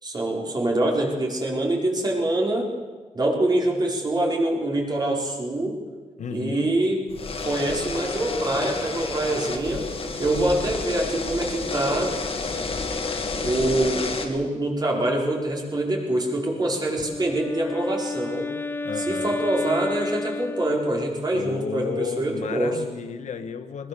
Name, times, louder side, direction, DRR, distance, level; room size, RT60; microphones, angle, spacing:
voice 1, 0.0-2.7 3.1-5.8 6.3-7.0 7.4-9.9 10.2-12.1 13.4-18.5 19.0-22.8, right 1 dB, 35° right, -1 dB, 5.0 m, -25 dB
voice 2, 6.2-6.7 18.8-19.4 21.3-23.9, left 6 dB, 70° left, 8 dB, 1.6 m, -33 dB
sound 1, 7.1-14.3, left 3 dB, 50° left, 3.0 m, -30 dB
Wind instrument woodwind instrument, 16.9-21.4, left 3 dB, 15° left, 0.8 m, -32 dB
21.0 x 21.0 x 7.1 m, 1.4 s
wide cardioid pair, 135°, 13 cm